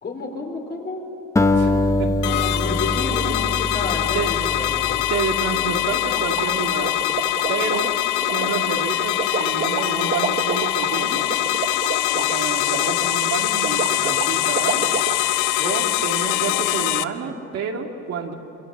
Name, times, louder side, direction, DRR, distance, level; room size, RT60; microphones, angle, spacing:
voice 1, 0.0-1.0 2.5-5.0 15.6-15.8, left 3 dB, 35° left, 1 dB, 4.8 m, -30 dB
Acoustic guitar, 1.4-5.8, left 2 dB, 10° left, 1.1 m, -23 dB
voice 2, 1.5-2.6 4.1-4.3 5.1-7.0 7.5-11.2 12.1-14.9 15.6-18.4, right 5 dB, 60° right, 2 dB, 2.6 m, -29 dB
sound 1, 2.2-17.0, left 15 dB, 90° left, 0.8 m, -23 dB
sound 2, 6.0-15.1, right 6 dB, 35° right, 1.6 m, -29 dB
27.5 x 26.5 x 7.5 m, 2.8 s
cardioid pair, 130°, 29 cm